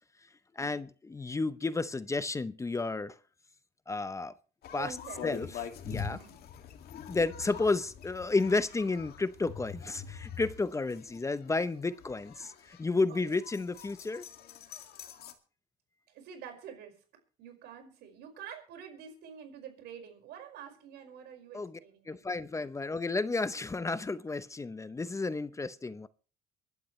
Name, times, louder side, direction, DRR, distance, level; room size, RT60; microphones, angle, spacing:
voice 1, 0.6-3.2 3.9-4.3 4.7-4.9 5.2-5.5 5.8-6.2 7.1-14.3 21.5-21.8 22.1-26.1, left 3 dB, 15° left, 0.7 m, -32 dB
sound 1, 4.6-15.3, left 7 dB, 65° left, 2.2 m, -44 dB
voice 2, 4.7-5.2 6.1-6.4 13.1-13.2 16.1-17.0 17.4-22.3, right 8 dB, 80° right, 5.2 m, -47 dB
24.5 x 12.0 x 3.2 m
cardioid pair, 110°, 17 cm